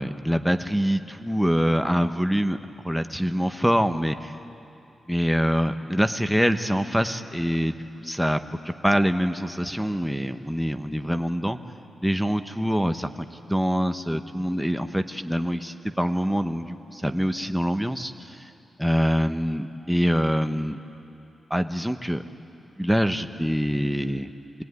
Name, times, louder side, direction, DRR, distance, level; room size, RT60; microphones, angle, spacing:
voice 1, 0.0-2.6 2.8-4.3 5.1-8.4 8.8-11.6 12.0-18.5 18.8-20.8 21.5-22.2 22.8-24.3, equal, ahead, 7 dB, 1.0 m, -25 dB
26.0 x 19.5 x 9.6 m, 2.7 s
wide cardioid pair, 125°, 0 cm